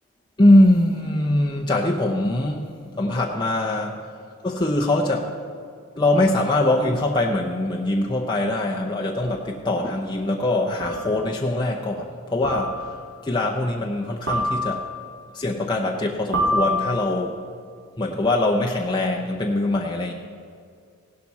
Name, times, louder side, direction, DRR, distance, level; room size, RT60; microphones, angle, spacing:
voice 1, 0.4-2.7 3.0-4.0 4.4-5.4 6.0-13.0 13.2-14.8 15.3-17.4 18.0-20.1, left 1 dB, 20° left, 0 dB, 0.6 m, -22 dB
sound 1, 9.2-9.3 10.8-11.2 12.4-13.0 14.3-15.0 16.3-17.3, equal, 55° right, 2.8 m, -26 dB
16.5 x 11.5 x 4.1 m, 2.3 s
head